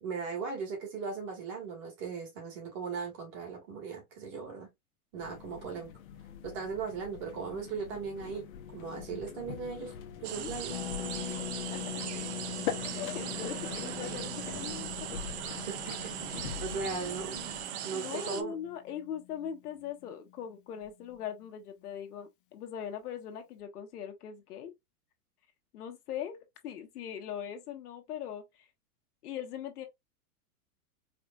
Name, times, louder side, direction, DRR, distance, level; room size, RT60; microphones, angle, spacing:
voice 1, 0.0-4.7 5.1-5.9 6.4-9.9 10.2-10.7 15.7-16.1 16.6-17.4 17.8-18.6, right 5 dB, 25° right, 1.6 m, -38 dB
sound 1, 5.2-17.7, left 9 dB, 65° left, 0.9 m, -43 dB
sound 2, 10.2-18.4, right 11 dB, 50° right, 0.5 m, -39 dB
Harp, 10.7-20.3 20.6-20.7 20.8-21.1, left 13 dB, 40° left, 0.4 m, -43 dB
voice 2, 12.9-14.8 16.8-17.1 17.9-24.7 25.7-28.7 29.2-29.9, left 9 dB, 80° left, 1.3 m, -41 dB
4.9 x 2.6 x 2.3 m
supercardioid pair, 170°, 45 cm